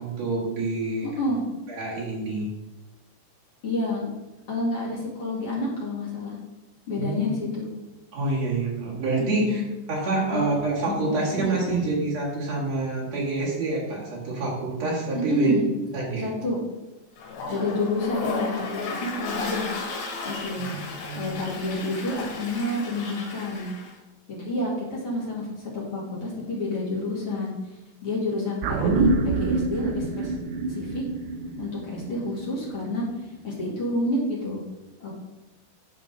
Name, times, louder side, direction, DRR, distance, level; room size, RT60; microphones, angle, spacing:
voice 1, 0.0-1.1 1.7-2.5 7.0-7.2 8.1-9.6 9.9-15.5 15.9-16.3 20.5-21.4, right 3 dB, 55° right, -5 dB, 2.0 m, -27 dB
voice 2, 3.6-4.1 4.5-6.3 6.9-7.7 9.2-9.7 10.1-10.4 10.9-11.8 15.1-15.7 16.2-16.6 17.5-19.7 20.2-20.7 21.1-23.7 24.3-27.5 28.0-30.3 30.7-31.0 31.6-33.0 33.4-34.6 35.0-35.1, left 2 dB, 45° left, -6 dB, 1.9 m, -29 dB
Toilet flush, 17.2-23.9, left 3 dB, 75° left, 3.5 m, -34 dB
sound 1, 28.6-33.2 33.5-33.6, right 3 dB, 80° right, 3.1 m, -26 dB
9.9 x 5.2 x 3.9 m, 1.0 s
omnidirectional pair, 5.3 m